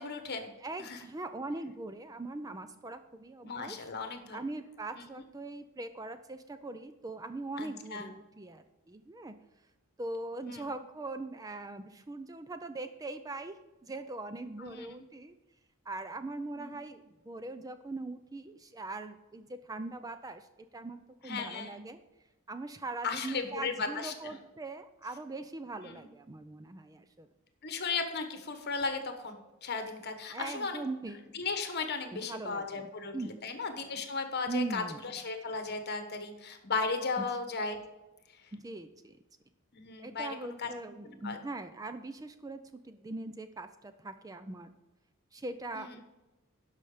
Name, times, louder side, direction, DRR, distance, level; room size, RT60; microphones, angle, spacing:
voice 1, 0.0-0.5 0.8-1.0 3.4-4.4 7.6-8.1 10.5-10.7 14.6-15.0 16.6-16.7 21.2-21.8 23.0-24.3 25.8-26.1 27.6-30.8 31.3-37.8 39.7-40.7 41.2-41.4 45.7-45.9, left 4 dB, 50° left, 7 dB, 1.3 m, -36 dB
voice 2, 0.6-3.9 4.3-9.4 10.0-15.3 15.9-20.5 20.7-21.0 21.2-22.0 22.5-27.3 30.3-31.3 32.1-32.9 33.1-33.3 34.5-35.0 37.2-37.3 38.5-39.2 40.0-42.6 42.8-44.7 45.3-46.0, right 2 dB, 15° right, 10 dB, 0.4 m, -41 dB
11.5 x 5.7 x 4.9 m, 1.1 s
head